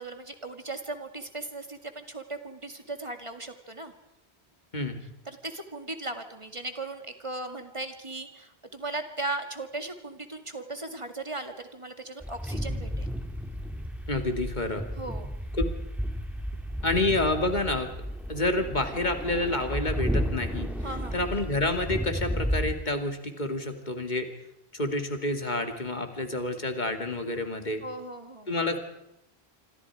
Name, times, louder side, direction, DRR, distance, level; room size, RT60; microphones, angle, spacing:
voice 1, 0.0-3.9 5.3-13.1 15.0-15.3 20.8-21.2 27.8-28.5, right 2 dB, 30° right, 7 dB, 2.2 m, -37 dB
sound 1, 12.2-22.7, equal, ahead, 2.2 m, -32 dB
voice 2, 14.1-14.8 15.6-15.7 16.8-17.9 18.3-20.7 21.1-24.3 24.7-27.8 28.5-28.8, left 2 dB, 45° left, 6 dB, 2.8 m, -28 dB
27.0 x 25.5 x 4.9 m, 0.83 s
omnidirectional pair, 1.1 m